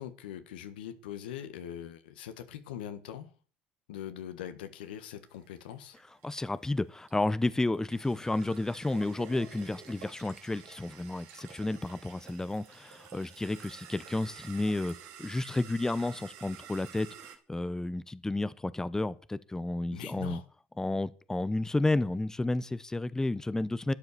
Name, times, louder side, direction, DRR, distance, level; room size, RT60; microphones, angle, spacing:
voice 1, 0.0-3.3 3.9-6.0 19.9-20.4, left 10 dB, 85° left, 1.5 m, -42 dB
sound 1, 4.9-17.4, right 8 dB, 70° right, 2.7 m, -50 dB
voice 2, 6.2-20.4 20.8-23.9, left 2 dB, 10° left, 0.8 m, -31 dB
12.0 x 9.6 x 6.8 m
hypercardioid pair, 75°, 5 cm